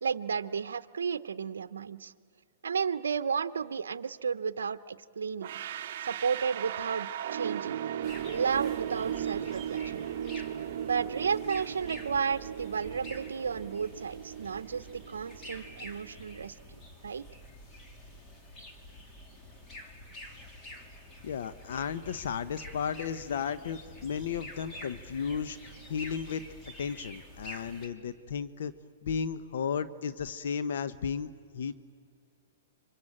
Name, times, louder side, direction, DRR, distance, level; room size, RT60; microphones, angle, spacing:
voice 1, 0.0-2.1 2.6-5.6 6.0-7.9 8.3-10.0 10.8-16.6 17.0-17.2, right 6 dB, 90° right, 12 dB, 0.7 m, -33 dB
sound 1, 5.4-16.3, right 10 dB, 60° right, 0.8 m, -37 dB
sound 2, 8.0-27.9, left 1 dB, 25° left, 2.8 m, -48 dB
voice 2, 21.2-25.6 25.9-26.4 26.8-28.7 29.0-31.7, left 7 dB, 70° left, 13 dB, 0.9 m, -34 dB
26.5 x 24.0 x 8.8 m, 2.4 s
hypercardioid pair, 140°, 0 cm